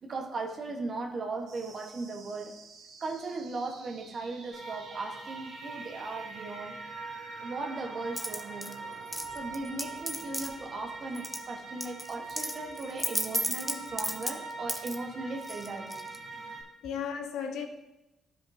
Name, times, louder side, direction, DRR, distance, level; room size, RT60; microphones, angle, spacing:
voice 1, 0.0-2.5 3.0-6.8 7.4-8.8 9.3-15.9, right 3 dB, 55° right, 3 dB, 1.2 m, -37 dB
sound 1, 1.5-12.5, right 4 dB, 80° right, 0.9 m, -53 dB
sound 2, 4.5-16.6, right 3 dB, 35° right, 2.0 m, -43 dB
sound 3, 8.2-8.7 9.1-10.5 11.2-11.4 11.8-15.0 15.4-16.2, equal, 5° right, 0.8 m, -33 dB
voice 2, 16.3-17.7, left 7 dB, 85° left, 5 dB, 0.8 m, -36 dB
11.5 x 5.2 x 2.7 m, 0.95 s
supercardioid pair, 60°, 0 cm